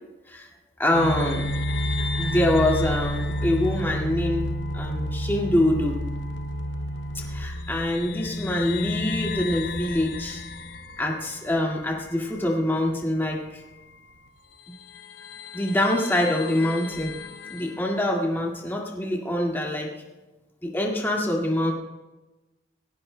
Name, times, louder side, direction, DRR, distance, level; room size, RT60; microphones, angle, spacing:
voice 1, 0.8-1.5 2.2-6.0 7.1-10.4 11.0-13.6 14.7-14.8 15.5-17.1 17.5-19.9 20.6-21.7, left 1 dB, 10° left, -1 dB, 2.0 m, -25 dB
sound 1, 0.9-12.9 13.2-13.3 14.3-14.4 14.9-17.9, left 1 dB, 65° left, 0.9 m, -31 dB
17.5 x 16.5 x 2.2 m, 1.1 s
head